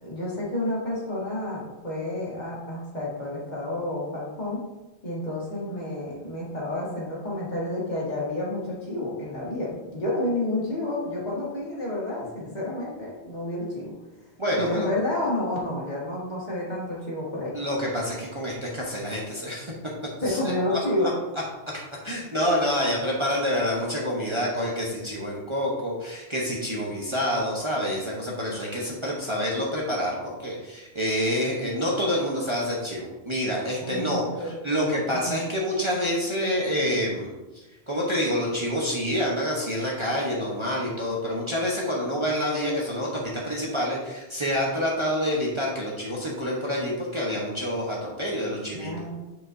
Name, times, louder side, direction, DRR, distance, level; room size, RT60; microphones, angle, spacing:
voice 1, 0.0-4.6 5.0-13.9 14.6-17.5 20.2-21.1 33.8-35.4 48.7-49.2, left 1 dB, 40° left, -6 dB, 2.0 m, -30 dB
voice 2, 14.4-14.9 17.5-19.7 20.2-20.4 21.7-37.4 37.9-48.9, equal, 30° right, -4 dB, 1.1 m, -27 dB
9.5 x 4.9 x 2.7 m, 1.1 s
omnidirectional pair, 1.1 m